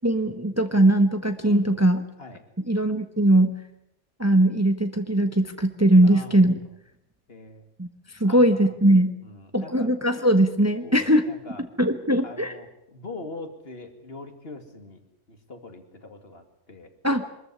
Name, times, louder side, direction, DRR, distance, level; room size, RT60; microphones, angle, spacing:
voice 1, 0.0-2.0 2.7-3.5 4.2-6.5 7.8-7.9 8.2-9.1 9.5-11.2 11.8-12.5 17.0-17.3, right 1 dB, 15° right, 8 dB, 1.1 m, -20 dB
voice 2, 1.4-1.8 2.2-2.4 6.0-6.6 7.3-7.7 8.2-8.7 9.2-9.9 10.8-11.6 12.2-15.0 15.3-16.9, left 2 dB, 55° left, 6 dB, 2.6 m, -42 dB
23.5 x 14.0 x 9.6 m, 0.81 s
omnidirectional pair, 1.2 m